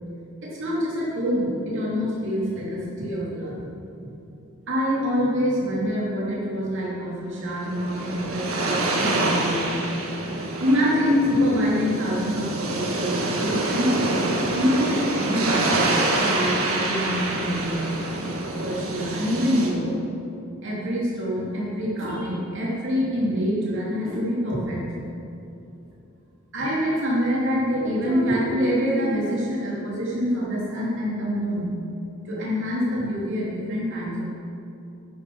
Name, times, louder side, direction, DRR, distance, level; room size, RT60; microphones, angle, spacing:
voice 1, 0.4-3.6 4.7-9.8 10.6-17.9 18.6-19.9 20.6-24.8 26.5-31.7 32.2-34.2, equal, 60° right, -6 dB, 3.1 m, -25 dB
sound 1, 7.4-19.7, right 2 dB, 80° right, 1.6 m, -26 dB
11.0 x 7.6 x 6.3 m, 2.7 s
head